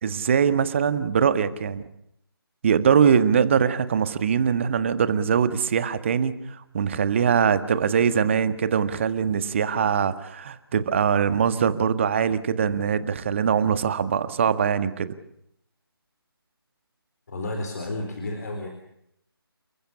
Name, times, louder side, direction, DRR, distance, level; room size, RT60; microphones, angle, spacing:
voice 1, 0.0-1.8 2.6-15.1, right 7 dB, 30° right, 13 dB, 1.6 m, -22 dB
voice 2, 17.3-18.7, left 2 dB, 40° left, 4 dB, 4.3 m, -31 dB
29.0 x 15.0 x 10.0 m, 0.76 s
figure-of-eight pair, 155°, 13 cm